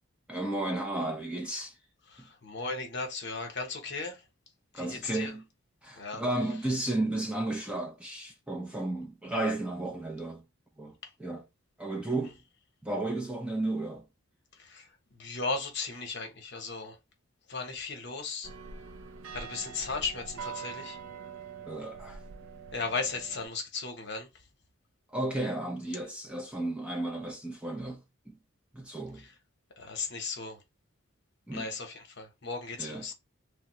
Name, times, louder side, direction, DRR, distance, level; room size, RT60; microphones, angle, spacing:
voice 1, 0.3-1.7 2.2-2.3 4.7-5.4 5.8-10.4 10.8-11.4 11.8-12.4 12.8-14.1 21.7-22.2 25.1-28.3 28.7-29.2 31.5-31.7 32.8-33.1, right 2 dB, 5° right, 0.4 m, -33 dB
voice 2, 2.1-4.2 4.7-5.3 5.9-6.2 14.6-17.0 17.5-18.5 19.3-21.0 22.7-24.3 29.2-29.3 29.8-30.6 31.5-33.1, left 4 dB, 55° left, 0.9 m, -36 dB
sound 1, 18.4-23.5, right 6 dB, 80° right, 0.4 m, -44 dB
3.5 x 2.0 x 3.0 m
head